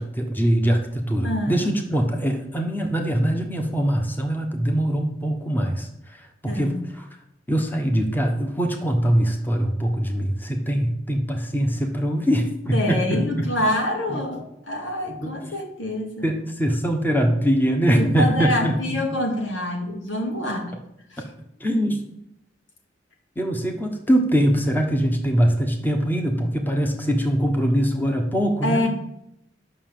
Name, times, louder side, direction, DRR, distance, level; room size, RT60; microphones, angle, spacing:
voice 1, 0.0-7.0 7.5-13.6 14.1-14.2 15.1-15.4 16.2-19.0 21.2-21.3 21.6-22.0 23.4-28.9, equal, 10° left, 3 dB, 1.2 m, -23 dB
voice 2, 1.2-1.7 6.5-6.8 12.7-16.3 17.9-20.7 21.1-21.2 28.6-28.9, left 1 dB, 85° left, 2 dB, 2.5 m, -26 dB
11.0 x 6.2 x 7.6 m, 0.78 s
head